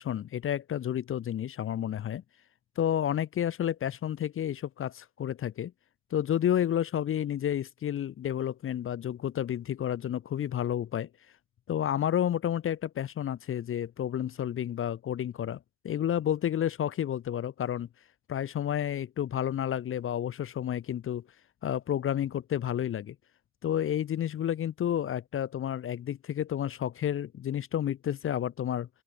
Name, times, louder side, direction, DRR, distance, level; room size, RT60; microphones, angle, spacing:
voice 1, 0.0-2.2 2.8-5.7 6.1-11.1 11.7-15.6 15.8-17.9 18.3-21.2 21.6-23.2 23.6-28.9, left 10 dB, 45° left, 0.5 m, -30 dB
open air
cardioid pair, 90°, 30 cm